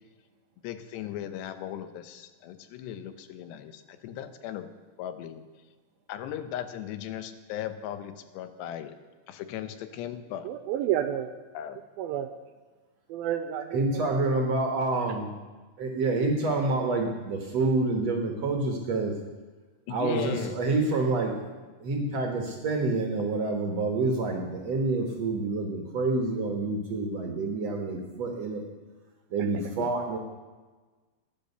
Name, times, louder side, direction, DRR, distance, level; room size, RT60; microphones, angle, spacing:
voice 1, 0.6-4.7 5.0-5.4 6.1-8.9 9.3-10.5 11.5-11.8 19.9-20.6 29.8-29.9, left 10 dB, 90° left, 10 dB, 3.1 m, -37 dB
voice 2, 10.4-11.3 12.0-12.3 13.1-14.2, right 11 dB, 80° right, 8 dB, 2.2 m, -30 dB
voice 3, 13.7-15.3 15.8-19.2 19.9-28.6 29.3-30.2, right 3 dB, 60° right, 2 dB, 1.9 m, -28 dB
15.5 x 10.5 x 6.8 m, 1.3 s
omnidirectional pair, 4.7 m